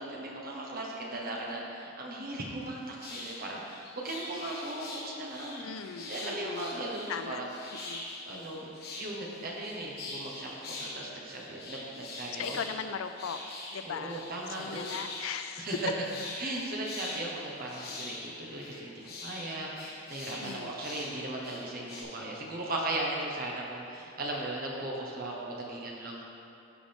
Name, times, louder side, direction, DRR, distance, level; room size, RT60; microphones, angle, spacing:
voice 1, 0.0-5.7 6.1-7.8 8.2-12.6 13.8-14.9 15.6-15.9 16.4-26.3, right 2 dB, 45° right, -3 dB, 1.3 m, -37 dB
sound 1, 2.6-2.7 3.0-10.9 11.2-22.0, left 2 dB, 50° left, 1.4 m, -43 dB
voice 2, 5.6-6.7 7.1-7.4 7.9-8.0 12.3-13.4 13.7-14.2 14.6-15.7 20.4-20.8, left 6 dB, 85° left, 9 dB, 0.4 m, -38 dB
12.5 x 4.9 x 3.6 m, 2.6 s
head